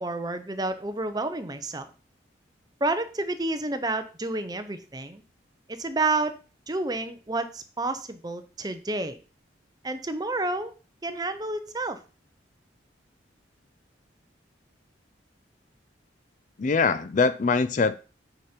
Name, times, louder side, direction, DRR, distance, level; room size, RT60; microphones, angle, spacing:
voice 1, 0.0-1.9 2.8-5.2 5.7-6.3 6.7-9.2 9.8-10.7 11.0-12.0, right 2 dB, 20° right, 0.7 m, -30 dB
voice 2, 16.6-18.0, left 4 dB, 40° left, 0.4 m, -23 dB
9.0 x 5.2 x 4.4 m
head